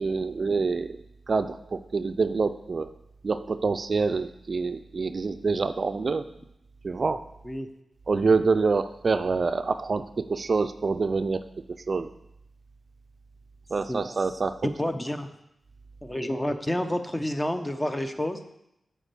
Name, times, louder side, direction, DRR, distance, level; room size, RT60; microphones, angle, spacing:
voice 1, 0.0-2.9 3.2-6.3 6.8-7.2 8.1-11.5 11.9-12.1 13.7-14.7, right 4 dB, 55° right, 11 dB, 0.4 m, -26 dB
voice 2, 14.8-15.3 16.0-18.4, left 1 dB, 20° left, 8 dB, 0.8 m, -29 dB
7.3 x 4.4 x 6.8 m, 0.81 s
cardioid pair, 55°, 0 cm